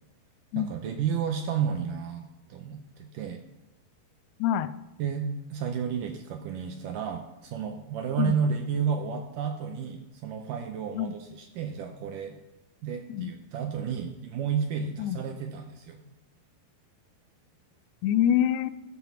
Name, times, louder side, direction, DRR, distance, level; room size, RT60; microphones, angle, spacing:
voice 1, 0.5-3.4 5.0-12.4 12.8-16.0, right 7 dB, 75° right, 5 dB, 2.0 m, -32 dB
voice 2, 4.4-4.7 8.2-8.4 11.0-11.1 13.1-13.3 15.0-15.2 18.0-18.7, left 11 dB, 90° left, 14 dB, 2.6 m, -25 dB
14.0 x 6.2 x 5.8 m, 0.99 s
omnidirectional pair, 4.5 m